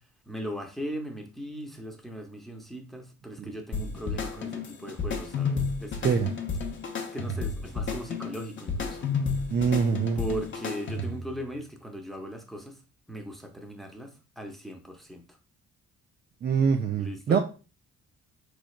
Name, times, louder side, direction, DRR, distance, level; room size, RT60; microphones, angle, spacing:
voice 1, 0.3-6.1 7.1-9.1 10.2-12.8 13.1-15.2 17.0-17.4, equal, ahead, 4 dB, 0.7 m, -38 dB
sound 1, 3.7-11.3, left 4 dB, 40° left, 0.7 m, -32 dB
voice 2, 9.5-10.2 16.4-17.4, right 6 dB, 35° right, 4 dB, 0.4 m, -24 dB
4.0 x 3.2 x 2.3 m, 0.33 s
cardioid pair, 90°, 30 cm